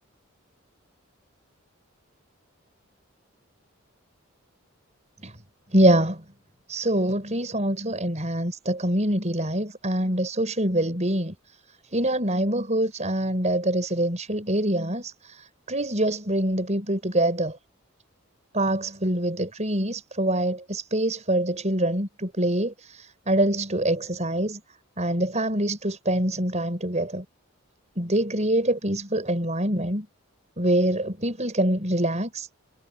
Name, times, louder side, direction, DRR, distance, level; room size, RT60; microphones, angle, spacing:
voice 1, 5.7-6.2 6.7-11.3 11.9-17.6 18.5-24.6 25.0-27.2 28.0-30.1 30.6-32.5, right 1 dB, 35° right, 6.3 m, -25 dB
head